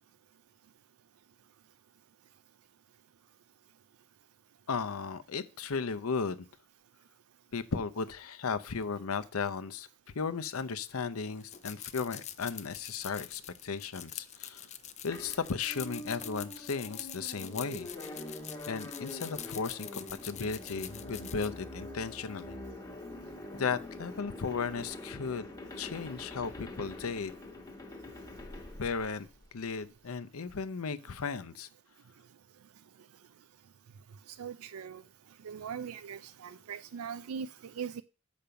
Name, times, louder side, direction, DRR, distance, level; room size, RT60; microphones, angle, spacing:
voice 1, 4.7-6.5 7.5-9.9 10.1-14.7 15.0-17.9 18.3-18.4 18.7-22.6 23.5-25.5 25.8-27.3 28.8-29.3 29.5-31.7, left 5 dB, 80° left, 0.7 m, -35 dB
sound 1, 11.4-21.5, left 11 dB, 30° left, 0.5 m, -45 dB
sound 2, 15.1-29.8, left 1 dB, 15° left, 1.3 m, -45 dB
voice 2, 34.4-35.0 35.4-38.0, right 7 dB, 90° right, 0.4 m, -40 dB
6.8 x 5.2 x 5.7 m
head